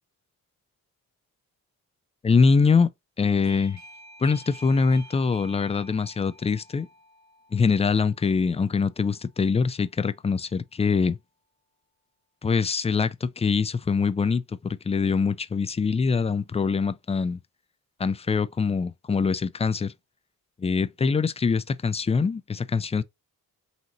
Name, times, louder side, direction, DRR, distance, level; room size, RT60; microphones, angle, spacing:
voice 1, 2.2-2.9 3.2-3.8 4.2-6.9 7.5-11.2 12.4-17.4 18.0-19.9 20.6-23.0, left 5 dB, 20° left, 0.3 m, -24 dB
Doorbell, 3.4-9.9, right 1 dB, 50° right, 1.3 m, -50 dB
3.9 x 2.9 x 4.0 m
cardioid pair, 75°, 36 cm